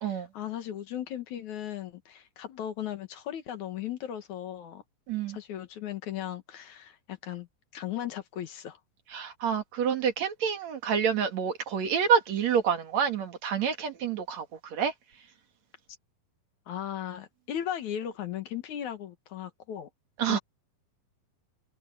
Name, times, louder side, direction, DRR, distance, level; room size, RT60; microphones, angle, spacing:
voice 1, 0.1-4.8 5.3-7.5 7.7-8.8 16.7-19.9 20.2-20.4, left 10 dB, 60° left, 2.6 m, -37 dB
voice 2, 5.1-5.4 9.1-14.9 20.2-20.4, right 7 dB, 55° right, 2.9 m, -28 dB
omnidirectional pair, 4.1 m